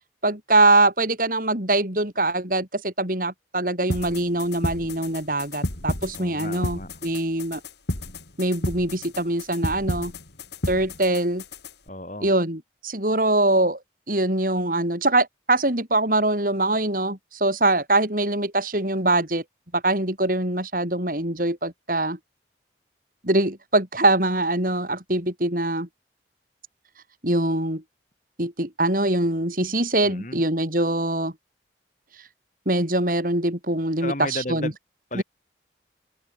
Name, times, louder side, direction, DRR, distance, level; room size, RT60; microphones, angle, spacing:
voice 1, 0.2-7.6 8.4-10.1 10.7-11.4 12.2-13.8 14.1-19.4 19.7-22.2 23.2-25.9 27.2-27.8 28.4-31.3 32.7-34.7 35.1-35.2, right 2 dB, 50° right, 4.8 m, -23 dB
sound 1, 3.9-11.9, left 1 dB, 70° left, 4.4 m, -32 dB
voice 2, 6.2-6.9 11.9-12.3 30.0-30.4 34.0-34.8 35.1-35.2, left 1 dB, 45° left, 6.2 m, -33 dB
head